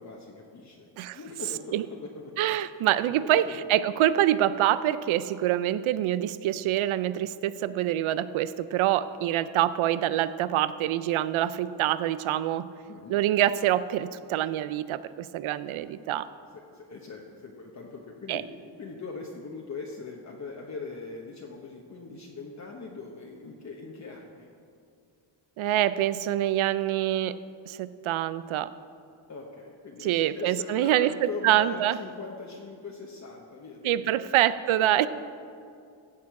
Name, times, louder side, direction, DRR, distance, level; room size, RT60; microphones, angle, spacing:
voice 1, 0.0-2.3 3.2-3.7 12.9-13.2 15.7-15.8 16.7-18.5 18.8-24.5 29.3-34.3 34.8-35.1, left 4 dB, 35° left, -1 dB, 1.0 m, -41 dB
voice 2, 2.4-12.7 13.1-16.3 18.3-18.4 25.6-27.4 27.7-28.7 30.0-32.0 33.8-35.1, right 12 dB, 85° right, 15 dB, 0.6 m, -25 dB
15.5 x 7.5 x 4.8 m, 2.5 s
cardioid pair, 120°, 47 cm